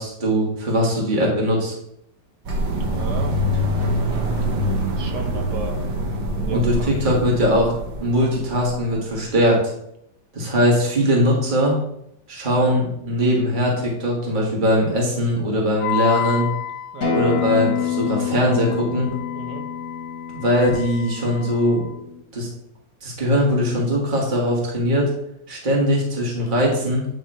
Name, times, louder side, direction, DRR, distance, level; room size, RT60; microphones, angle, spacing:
voice 1, 0.0-1.7 6.5-7.7 8.0-9.6 10.3-11.7 12.3-16.5 17.1-19.1 20.3-21.9 22.3-22.5 23.0-25.1 25.5-27.1, equal, 25° right, -3 dB, 1.9 m, -20 dB
sound 1, 2.5-9.2, equal, 90° right, 2.0 m, -25 dB
voice 2, 2.8-3.3 5.0-5.8 6.3-6.9 16.9-17.2 19.3-19.6, right 3 dB, 65° right, 3 dB, 1.6 m, -33 dB
Wind instrument woodwind instrument, 15.8-21.9, left 11 dB, 75° left, 1.2 m, -31 dB
Acoustic guitar, 17.0-22.2, left 8 dB, 55° left, 2.5 m, -27 dB
10.0 x 3.6 x 4.3 m, 0.76 s
omnidirectional pair, 2.0 m